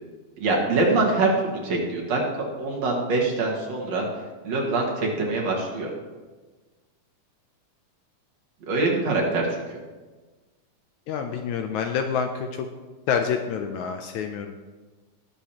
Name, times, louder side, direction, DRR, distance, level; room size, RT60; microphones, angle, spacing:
voice 1, 0.4-4.0 4.4-5.9 8.6-9.6, right 3 dB, 60° right, -2 dB, 2.8 m, -24 dB
voice 2, 11.1-12.7 13.1-14.5, left 7 dB, 75° left, 5 dB, 1.8 m, -27 dB
19.0 x 7.2 x 2.9 m, 1.3 s
omnidirectional pair, 3.7 m